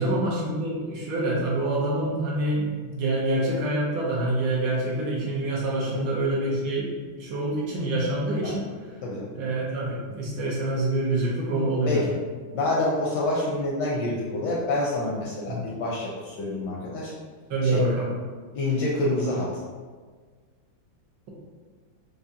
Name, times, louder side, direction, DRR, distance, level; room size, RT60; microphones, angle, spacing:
voice 1, 0.0-8.6 9.3-12.0 15.5-15.6 17.5-18.1, right 1 dB, 70° right, -5 dB, 1.5 m, -26 dB
voice 2, 11.8-12.1 12.5-17.1 17.6-17.8 18.5-19.5, left 2 dB, 75° left, -4 dB, 1.0 m, -27 dB
4.8 x 2.2 x 2.7 m, 1.5 s
omnidirectional pair, 2.2 m